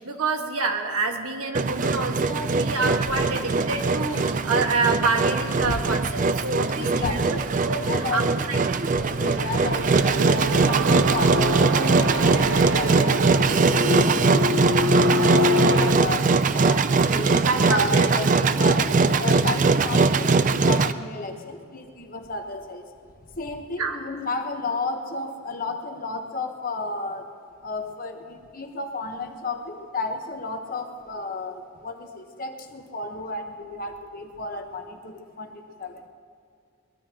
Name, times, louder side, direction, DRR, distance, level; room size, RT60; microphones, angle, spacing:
voice 1, 0.0-7.4 7.7-7.8 8.1-8.6 17.2-18.4 23.8-24.0, right 3 dB, 75° right, 3 dB, 1.6 m, -27 dB
Engine, 1.5-20.9, right 4 dB, 35° right, 0.4 m, -21 dB
sound 1, 2.8-3.3 3.8-4.3 5.6-5.9 7.0-7.2, left 3 dB, 90° left, 0.8 m, -33 dB
voice 2, 6.7-7.4 7.8-13.4 13.7-17.4 17.7-22.9 23.2-27.3 27.6-36.1, left 3 dB, 40° left, 4 dB, 1.1 m, -33 dB
sound 2, 9.0-15.9, left 1 dB, 55° right, 0.9 m, -25 dB
22.0 x 21.0 x 2.9 m, 2.4 s
head